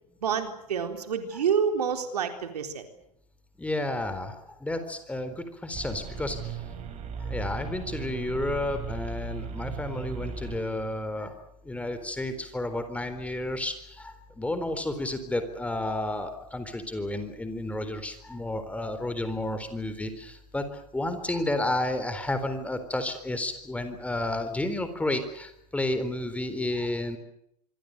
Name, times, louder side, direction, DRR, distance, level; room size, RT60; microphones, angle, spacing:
voice 1, 0.2-2.8, right 7 dB, 70° right, 6 dB, 4.0 m, -28 dB
voice 2, 3.6-6.6 7.2-11.3 11.6-20.6 20.9-27.2, left 1 dB, 5° left, 9 dB, 4.0 m, -31 dB
sound 1, 5.7-10.9, right 5 dB, 30° right, 6.2 m, -37 dB
25.5 x 24.5 x 6.7 m, 0.74 s
figure-of-eight pair, 100°, 21 cm